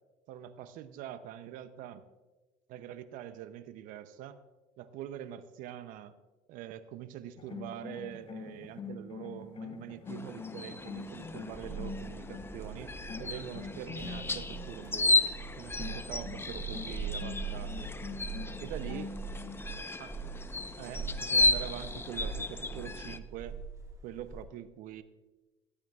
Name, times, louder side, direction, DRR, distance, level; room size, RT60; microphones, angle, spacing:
voice 1, 0.3-2.0 2.7-4.4 4.8-6.2 6.5-15.2 15.6-17.9 18.6-19.1 20.0-20.2 20.8-23.6 24.0-25.0, right 11 dB, 70° right, 12 dB, 0.7 m, -44 dB
sound 1, 7.4-12.6 13.1-14.7 15.8-19.6, left 4 dB, 40° left, 2.8 m, -44 dB
sound 2, 10.1-23.2, left 2 dB, 15° left, 0.8 m, -34 dB
sound 3, 10.9-24.4, right 4 dB, 25° right, 2.2 m, -42 dB
18.0 x 13.0 x 2.4 m, 1.2 s
supercardioid pair, 85°, 14 cm